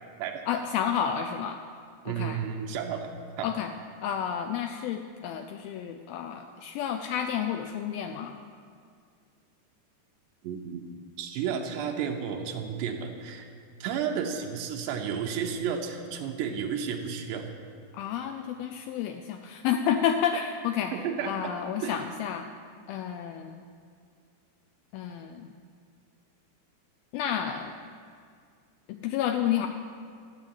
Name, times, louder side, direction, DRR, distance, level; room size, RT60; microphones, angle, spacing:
voice 1, 0.5-1.6 2.1-2.4 3.4-3.7 4.0-8.4 17.9-20.9 21.2-22.5 22.9-23.6 24.9-25.5 27.1-27.7 28.9-29.7, left 9 dB, 90° left, 6 dB, 2.1 m, -30 dB
voice 2, 2.1-3.1 3.4-3.5 10.4-10.8 11.2-13.5 13.8-17.5 20.9-21.5 21.8-22.0, right 7 dB, 80° right, 2 dB, 3.0 m, -32 dB
12.5 x 7.5 x 8.9 m, 2.3 s
omnidirectional pair, 4.9 m